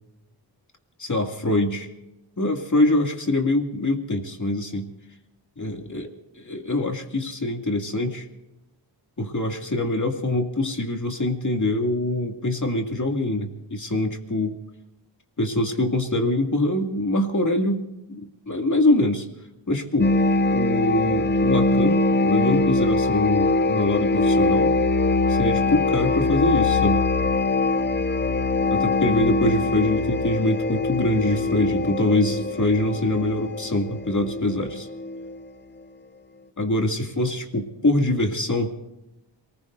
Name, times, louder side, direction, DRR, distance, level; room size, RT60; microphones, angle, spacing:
voice 1, 1.0-1.9 2.4-4.9 5.6-6.1 6.4-8.3 9.2-14.6 15.4-19.3 19.7-20.1 20.5-24.7 25.3-27.0 28.7-34.9 36.6-38.7, left 1 dB, 40° left, 2 dB, 2.4 m, -24 dB
sound 1, 20.0-35.5, left 2 dB, 25° left, 0.6 m, -22 dB
27.5 x 20.0 x 2.6 m, 0.94 s
cardioid pair, 55°, 45 cm